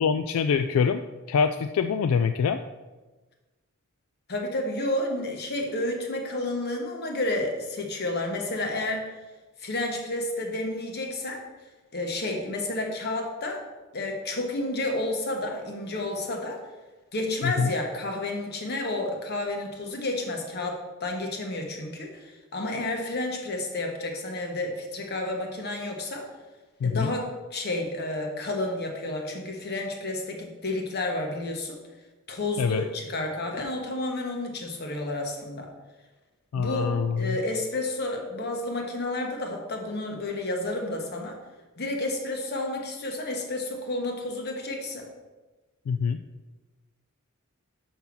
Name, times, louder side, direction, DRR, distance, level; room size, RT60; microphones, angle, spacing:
voice 1, 0.0-2.6 17.4-17.7 26.8-27.1 32.6-32.8 36.5-37.4 45.9-46.2, left 6 dB, 80° left, 9 dB, 0.3 m, -25 dB
voice 2, 4.3-9.0 9.6-11.4 11.9-13.6 13.9-16.6 17.1-26.3 26.8-31.8 32.3-35.7 36.6-41.4 41.8-45.1, left 2 dB, 50° left, 2 dB, 1.2 m, -31 dB
5.7 x 5.5 x 6.0 m, 1.2 s
head